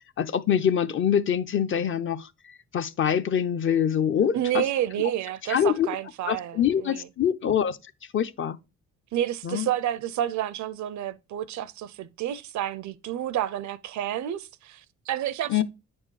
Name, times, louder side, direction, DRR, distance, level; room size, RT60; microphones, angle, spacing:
voice 1, 0.2-2.3 2.7-4.6 5.5-5.9 6.3-7.8 8.1-8.6 9.4-9.7 15.5-15.6, left 9 dB, 40° left, 0.5 m, -24 dB
voice 2, 4.3-7.1 9.1-15.6, right 11 dB, 70° right, 0.5 m, -30 dB
8.7 x 4.4 x 3.2 m
cardioid pair, 90°, 30 cm